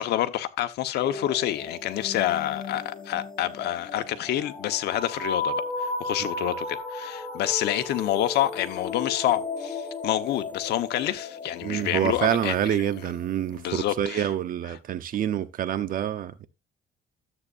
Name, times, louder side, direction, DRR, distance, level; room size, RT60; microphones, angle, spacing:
voice 1, 0.0-13.2 13.5-14.3 14.7-14.8, left 12 dB, 75° left, 1.2 m, -28 dB
sound 1, 1.0-13.7, left 3 dB, 30° left, 4.6 m, -35 dB
voice 2, 11.6-16.5, right 10 dB, 55° right, 1.0 m, -27 dB
13.0 x 8.3 x 2.6 m
cardioid pair, 110°, 17 cm